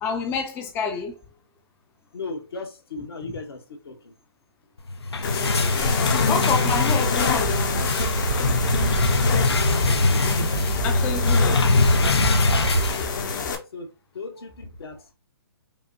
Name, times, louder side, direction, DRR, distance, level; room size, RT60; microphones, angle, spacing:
voice 1, 0.0-1.1 3.2-3.3 6.3-7.5 10.8-11.7 12.1-12.3, left 5 dB, 15° left, 0.4 m, -28 dB
voice 2, 2.1-4.1 13.7-13.9 14.1-15.1, left 3 dB, 70° left, 1.1 m, -36 dB
sound 1, 4.9-13.5, left 3 dB, 85° left, 0.7 m, -23 dB
sound 2, 5.2-13.6, left 5 dB, 50° left, 0.7 m, -28 dB
sound 3, 5.5-12.9, right 5 dB, 60° right, 0.5 m, -29 dB
5.3 x 2.1 x 2.6 m
hypercardioid pair, 135°, 13 cm